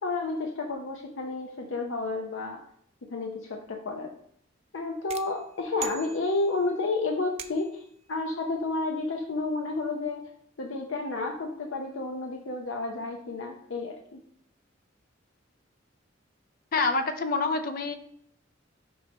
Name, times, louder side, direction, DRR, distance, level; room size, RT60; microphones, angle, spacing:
voice 1, 0.0-2.6 3.1-4.1 4.7-10.3 10.6-14.2, left 3 dB, 90° left, 2 dB, 0.7 m, -31 dB
sound 1, 5.1-6.7 7.4-7.9, right 7 dB, 35° right, 0.4 m, -42 dB
voice 2, 16.7-17.9, left 3 dB, 50° left, 9 dB, 0.4 m, -26 dB
6.8 x 3.1 x 5.3 m, 0.68 s
head